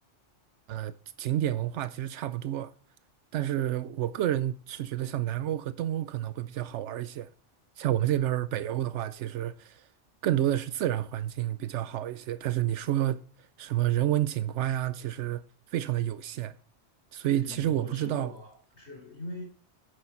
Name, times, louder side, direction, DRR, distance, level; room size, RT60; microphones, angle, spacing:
voice 1, 1.2-2.7 3.3-7.3 7.8-9.9 10.2-13.3 13.6-15.4 15.7-16.5 17.1-18.3, right 12 dB, 80° right, 0.9 m, -29 dB
voice 2, 17.2-19.4, left 2 dB, 70° left, 3.5 m, -42 dB
9.9 x 6.5 x 4.5 m
omnidirectional pair, 1.2 m